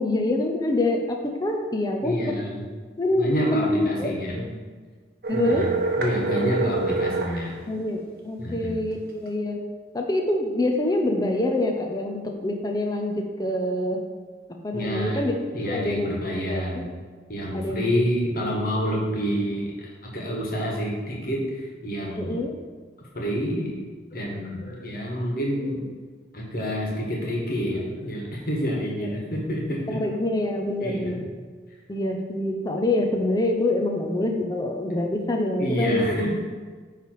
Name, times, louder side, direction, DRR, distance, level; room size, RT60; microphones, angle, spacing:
voice 1, 0.0-2.3 3.0-4.1 5.3-5.7 7.7-9.6 9.9-14.0 14.6-15.3 15.7-16.1 16.5-16.8 17.5-17.9 22.2-22.6 29.0-29.1 29.9-31.2 31.9-36.2, left 1 dB, 20° left, 2 dB, 0.6 m, -25 dB
voice 2, 2.0-2.6 3.1-4.6 5.3-7.6 8.4-8.8 14.7-15.2 15.5-16.9 17.3-22.4 23.1-23.8 24.1-25.8 26.3-30.0 30.8-31.2 35.6-36.4, equal, 55° left, -2 dB, 1.6 m, -28 dB
sound 1, 5.2-7.4, right 3 dB, 55° right, 0.9 m, -26 dB
9.5 x 3.3 x 4.6 m, 1.5 s
head